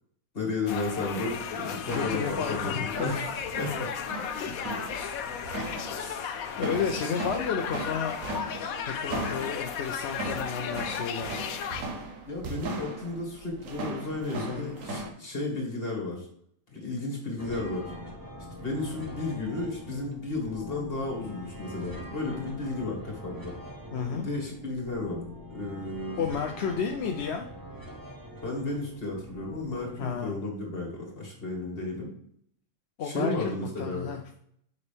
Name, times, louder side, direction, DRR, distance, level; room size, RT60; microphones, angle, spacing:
voice 1, 0.3-3.3 3.6-3.9 5.9-6.4 12.3-16.3 16.7-17.9 18.6-23.5 24.1-25.2 25.5-26.3 28.4-32.1 33.0-34.1, left 2 dB, 40° left, -1 dB, 2.3 m, -33 dB
sound 1, 0.7-11.8, left 7 dB, 80° left, 1.1 m, -35 dB
sound 2, 1.8-15.1, right 2 dB, 70° right, 1.4 m, -38 dB
voice 2, 1.9-3.2 4.4-4.6 4.9-5.2 6.6-8.2 8.9-11.4 14.3-15.0 23.9-24.3 26.2-27.5 30.0-30.4 33.0-34.2, left 6 dB, 60° left, 3 dB, 0.8 m, -32 dB
sound 3, 17.4-30.1, equal, 20° right, 0.8 m, -44 dB
6.8 x 5.4 x 3.4 m, 0.68 s
omnidirectional pair, 1.5 m